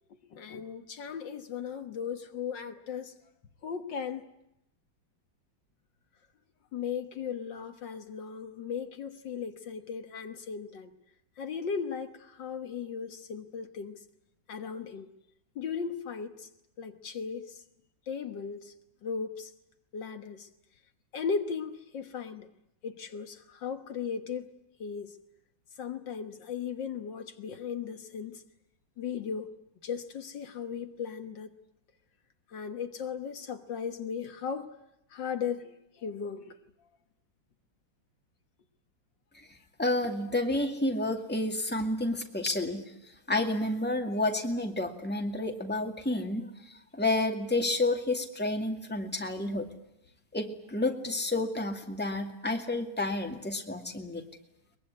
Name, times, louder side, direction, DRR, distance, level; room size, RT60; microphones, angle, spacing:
voice 1, 0.3-3.1 3.6-4.2 6.7-10.9 11.4-14.0 14.5-15.1 15.6-16.5 16.8-17.6 18.1-18.7 19.0-19.5 19.9-20.5 21.1-22.5 22.8-24.5 24.8-25.2 25.8-28.4 29.0-29.5 29.8-31.5 32.5-34.7 35.1-36.5, left 6 dB, 70° left, 7 dB, 2.0 m, -37 dB
voice 2, 39.8-42.8 43.3-46.5 46.9-49.7 50.3-54.2, left 2 dB, 5° left, 3 dB, 2.2 m, -30 dB
23.0 x 22.0 x 9.6 m, 0.84 s
omnidirectional pair, 2.1 m